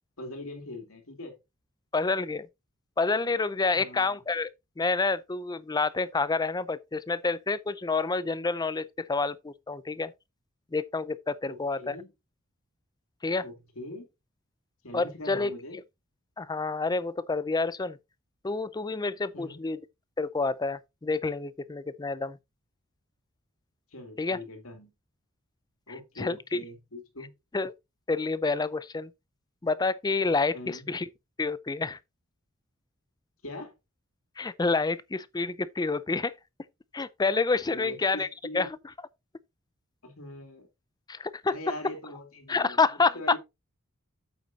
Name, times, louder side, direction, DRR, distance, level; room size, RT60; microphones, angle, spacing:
voice 1, 0.2-1.3 3.7-4.2 11.4-12.1 13.4-14.1 14.8-15.8 19.3-19.6 23.9-24.9 25.9-27.3 30.5-30.9 33.4-33.7 37.7-38.7 40.0-40.7 41.5-42.8 43.1-43.4, left 1 dB, 80° left, 2.7 m, -42 dB
voice 2, 1.9-2.5 3.0-4.5 4.8-10.1 10.7-12.0 13.2-13.5 14.9-15.5 16.4-18.0 18.4-19.8 20.2-22.4 24.2-24.4 26.2-26.6 27.5-27.7 28.1-29.1 29.6-31.1 31.4-32.0 34.4-36.3 36.9-38.3 38.5-38.7 41.1-41.6 42.5-43.2, left 3 dB, 20° left, 0.5 m, -28 dB
8.2 x 8.1 x 2.8 m
head